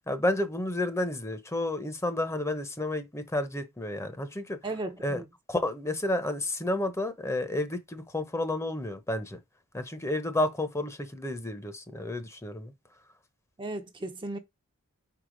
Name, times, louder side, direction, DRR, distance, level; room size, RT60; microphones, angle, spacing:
voice 1, 0.1-4.6 5.0-5.2 5.5-9.4 9.7-12.7, left 1 dB, 15° left, 0.8 m, -31 dB
voice 2, 4.6-5.3 13.6-14.4, right 2 dB, 20° right, 0.7 m, -35 dB
4.7 x 4.5 x 5.1 m
head